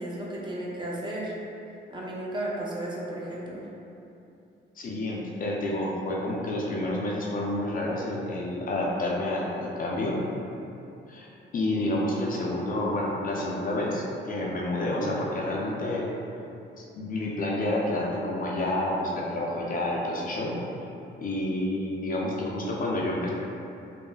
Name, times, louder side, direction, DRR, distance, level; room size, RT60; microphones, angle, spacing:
voice 1, 0.0-1.3 1.9-3.6, right 1 dB, 25° right, -5 dB, 0.5 m, -34 dB
voice 2, 4.8-10.2 11.1-11.3 11.5-16.1 17.0-20.6 21.2-23.3, left 1 dB, 45° left, -3 dB, 0.4 m, -29 dB
3.2 x 2.1 x 2.2 m, 2.7 s
cardioid pair, 90°, 20 cm